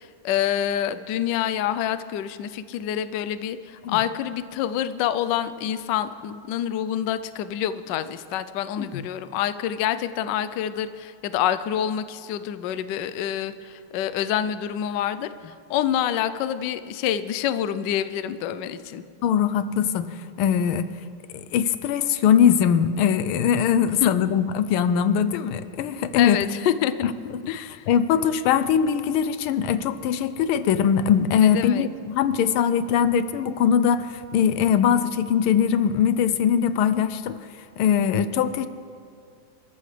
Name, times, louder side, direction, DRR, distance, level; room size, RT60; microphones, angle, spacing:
voice 1, 0.0-19.0 24.0-24.1 26.1-27.1 27.5-27.9 31.4-31.9, left 10 dB, 70° left, 12 dB, 1.1 m, -27 dB
voice 2, 19.2-20.9 21.3-26.4 27.0-27.1 27.9-37.4 37.8-38.7, left 8 dB, 90° left, 12 dB, 1.6 m, -21 dB
27.5 x 14.0 x 3.3 m, 2.2 s
omnidirectional pair, 2.3 m